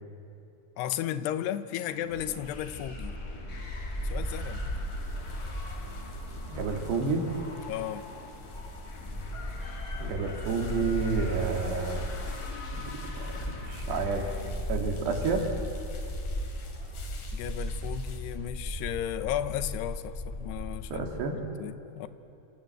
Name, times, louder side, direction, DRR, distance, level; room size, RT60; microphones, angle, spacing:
voice 1, 0.8-3.2 4.0-4.7 7.7-8.1 17.3-22.1, left 11 dB, 85° left, 13 dB, 3.0 m, -34 dB
sound 1, 1.6-14.5, left 3 dB, 35° left, 1.7 m, -47 dB
Bark, 2.1-21.2, equal, 15° left, 1.3 m, -37 dB
sound 2, 3.7-18.2, left 4 dB, 55° left, 4.3 m, -51 dB
voice 2, 6.5-7.3 10.0-12.1 12.7-12.9 13.2-14.3 14.7-15.4 20.9-21.4, right 4 dB, 85° right, 3 dB, 4.7 m, -30 dB
27.0 x 26.5 x 7.8 m, 2.9 s
omnidirectional pair, 4.7 m